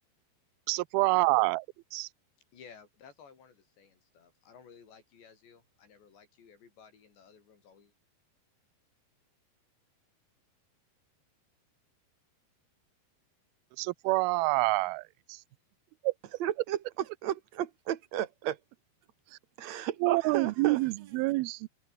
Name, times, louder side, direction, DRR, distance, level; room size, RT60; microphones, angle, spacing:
voice 1, 0.7-1.7 1.9-2.1 13.8-15.4 16.0-16.1 19.3-19.4 20.0-21.7, right 23 dB, 80° right, 2.3 m, -27 dB
voice 2, 2.5-7.9, left 6 dB, 85° left, 7.2 m, -56 dB
voice 3, 16.4-16.8 17.2-18.6 19.6-20.8, right 11 dB, 55° right, 2.2 m, -33 dB
omnidirectional pair, 4.9 m